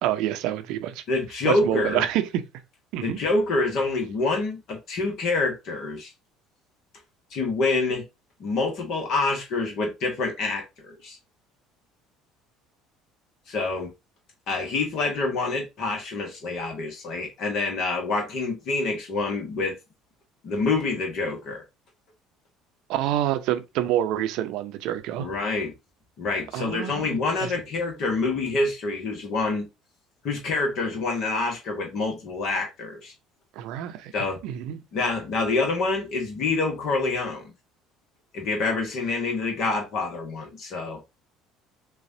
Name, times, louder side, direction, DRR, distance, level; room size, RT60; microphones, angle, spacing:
voice 1, 0.0-1.0 1.4-2.4 2.9-3.2 22.9-25.3 26.5-27.5 33.6-34.1 34.4-34.8, right 12 dB, 60° right, 0.6 m, -27 dB
voice 2, 1.1-2.0 3.0-6.1 7.3-8.0 8.4-11.2 13.5-13.9 14.5-19.8 20.4-21.6 25.2-25.7 26.2-29.7 30.2-33.1 34.1-34.4 34.9-37.5 38.3-41.0, left 3 dB, 50° left, 1.1 m, -27 dB
6.6 x 2.4 x 2.7 m
figure-of-eight pair, 60°, 0 cm